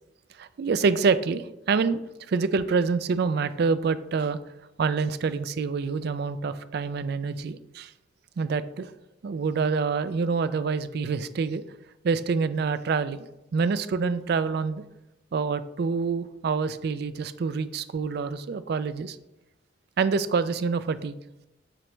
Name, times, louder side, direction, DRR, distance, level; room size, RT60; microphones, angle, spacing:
voice 1, 0.4-2.0 2.3-4.4 4.8-7.9 8.4-8.9 9.2-11.6 12.0-13.2 13.5-14.8 15.3-19.2 20.0-21.2, right 5 dB, 60° right, 13 dB, 0.4 m, -26 dB
7.5 x 5.1 x 3.2 m, 0.92 s
head